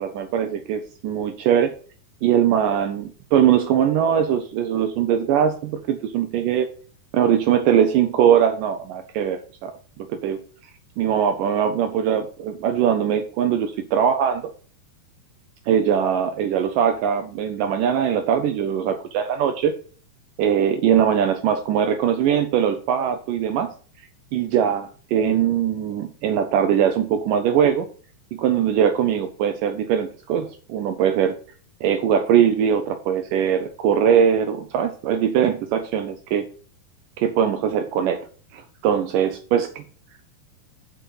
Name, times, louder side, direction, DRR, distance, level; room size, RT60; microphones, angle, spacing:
voice 1, 0.0-1.7 2.2-6.7 7.1-9.7 10.0-10.4 11.0-14.4 15.7-19.7 20.4-23.7 24.3-27.9 28.4-31.4 31.8-36.5 37.2-38.2 38.5-39.7, right 8 dB, 85° right, 8 dB, 1.9 m, -21 dB
6.8 x 6.2 x 5.4 m, 0.41 s
omnidirectional pair, 4.6 m